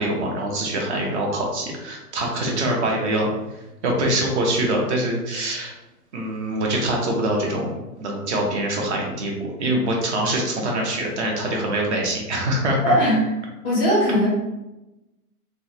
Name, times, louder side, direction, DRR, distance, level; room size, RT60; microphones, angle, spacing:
voice 1, 0.0-3.3 3.8-5.7 6.1-13.0, right 1 dB, 45° right, 0 dB, 0.8 m, -24 dB
voice 2, 12.8-13.2 13.6-14.3, equal, 10° right, -8 dB, 0.4 m, -19 dB
3.4 x 2.1 x 2.7 m, 1.0 s
hypercardioid pair, 150°, 47 cm